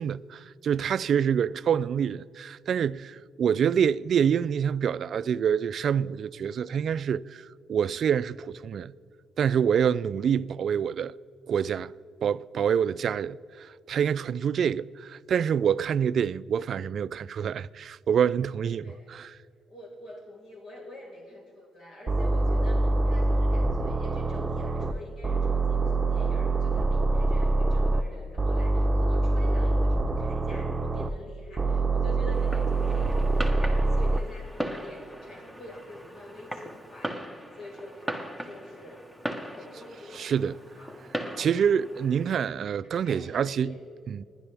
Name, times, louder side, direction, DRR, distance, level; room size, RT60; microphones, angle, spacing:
voice 1, 0.0-8.9 9.4-11.1 11.5-11.9 12.2-19.4 40.2-40.5 41.4-43.7 44.1-44.2, right 8 dB, 60° right, 0.3 m, -26 dB
voice 2, 18.8-19.1 19.7-39.1 39.4-41.0 42.8-43.8, left 1 dB, 60° left, 4.7 m, -46 dB
sound 1, 22.1-24.9 25.2-28.0 28.4-31.1 31.6-34.2, right 2 dB, 20° right, 0.9 m, -25 dB
Fireworks, 32.3-42.4, right 1 dB, 10° left, 1.4 m, -39 dB
27.0 x 11.0 x 3.5 m
cardioid pair, 90°, 0 cm